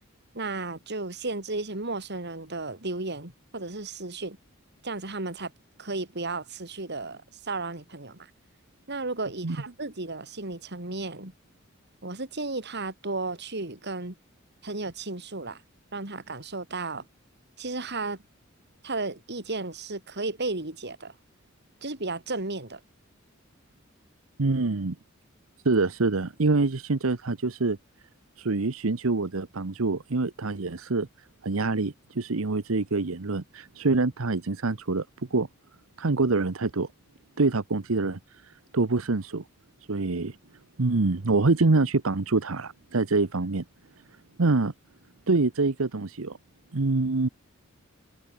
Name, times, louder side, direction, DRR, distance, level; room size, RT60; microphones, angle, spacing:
voice 1, 0.3-4.4 4.8-5.5 5.8-8.3 8.9-11.3 12.0-14.2 14.6-15.6 15.9-17.0 17.6-18.2 18.8-21.1 21.8-22.8, right 3 dB, 55° right, 3.5 m, -34 dB
voice 2, 24.4-24.9 25.6-27.8 28.4-31.1 31.4-35.1 35.3-35.5 36.0-36.9 37.4-39.4 39.9-40.4 40.8-43.6 44.4-44.7 45.3-46.4 46.7-47.3, right 3 dB, 85° right, 1.0 m, -25 dB
head